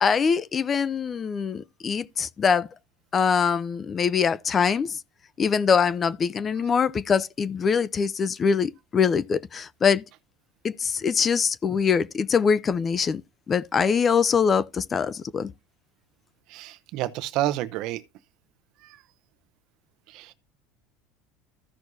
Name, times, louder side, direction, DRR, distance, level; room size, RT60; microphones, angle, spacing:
voice 1, 0.0-2.7 3.1-5.0 5.4-10.0 10.6-13.2 13.5-15.5, left 6 dB, 30° left, 0.5 m, -23 dB
voice 2, 16.5-18.0 20.1-20.3, right 14 dB, 60° right, 0.8 m, -29 dB
15.0 x 6.1 x 2.7 m
supercardioid pair, 110°, 0 cm